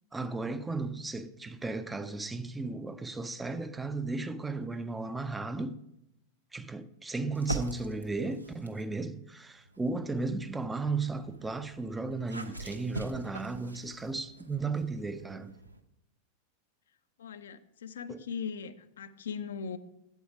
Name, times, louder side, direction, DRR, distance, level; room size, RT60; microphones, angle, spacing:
voice 1, 0.1-5.8 6.5-15.6 18.1-18.2, right 3 dB, 10° right, 0.4 m, -35 dB
sound 1, 7.3-8.9 9.6-15.8, right 1 dB, 85° right, 0.6 m, -43 dB
voice 2, 17.2-19.8, left 6 dB, 65° left, 0.4 m, -39 dB
8.2 x 7.8 x 4.7 m
figure-of-eight pair, 90°, 0 cm